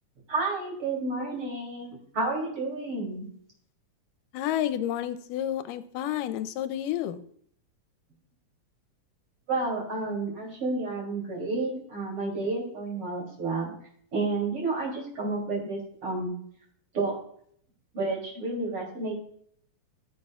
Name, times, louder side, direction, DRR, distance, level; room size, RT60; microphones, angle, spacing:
voice 1, 0.3-3.3 9.5-13.7 14.1-16.3 16.9-17.2 17.9-19.2, right 3 dB, 45° right, -1 dB, 3.6 m, -30 dB
voice 2, 4.3-7.2, left 11 dB, 85° left, 12 dB, 2.2 m, -30 dB
15.5 x 7.0 x 2.4 m, 0.63 s
omnidirectional pair, 3.8 m